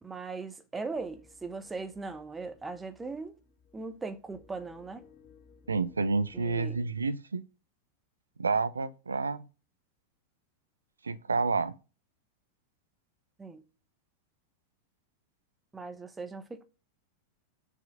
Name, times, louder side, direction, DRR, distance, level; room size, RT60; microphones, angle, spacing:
voice 1, 0.0-3.3 3.7-5.0 6.3-6.8 13.4-13.6 15.7-16.6, right 4 dB, 10° right, 1.1 m, -39 dB
sound 1, 0.9-6.9, left 5 dB, 35° left, 1.9 m, -60 dB
voice 2, 5.7-7.4 8.4-9.4 11.0-11.7, right 4 dB, 75° right, 0.6 m, -29 dB
7.0 x 4.8 x 6.8 m
figure-of-eight pair, 90°, 0 cm